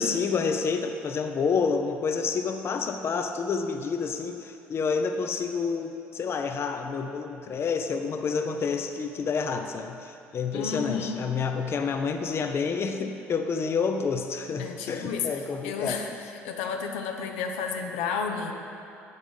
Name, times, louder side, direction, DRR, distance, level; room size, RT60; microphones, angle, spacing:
voice 1, 0.0-16.0, left 5 dB, 45° left, 6 dB, 0.5 m, -29 dB
voice 2, 10.5-11.2 14.6-15.3 15.6-16.1 16.4-18.5, left 6 dB, 85° left, 3 dB, 0.6 m, -31 dB
6.1 x 5.2 x 5.3 m, 2.6 s
supercardioid pair, 70°, 6 cm